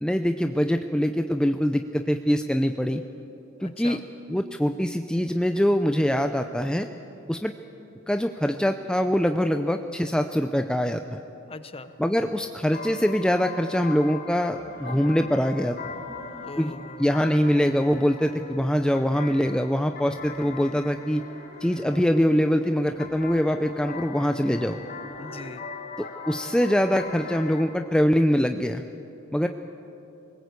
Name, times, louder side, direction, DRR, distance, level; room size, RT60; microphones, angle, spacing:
voice 1, 0.0-3.0 3.6-4.0 4.3-6.9 7.3-7.5 8.1-11.2 12.0-15.8 16.6-16.7 17.0-21.2 21.6-24.8 26.0-28.8 29.3-29.5, equal, 5° left, 6 dB, 0.5 m, -23 dB
voice 2, 3.6-4.0 11.5-11.9 16.4-17.1 25.2-25.6 29.4-29.5, left 3 dB, 25° left, 11 dB, 0.9 m, -40 dB
sound 1, 11.9-27.6, left 5 dB, 45° left, 2.1 m, -41 dB
sound 2, 13.0-13.1 14.4-15.3 15.8-16.8 17.2-18.1 18.5-19.4 20.0-22.1 22.9-23.7 24.5-25.6 26.8-27.5, equal, 50° right, 3.7 m, -48 dB
22.0 x 19.0 x 8.2 m, 2.8 s
head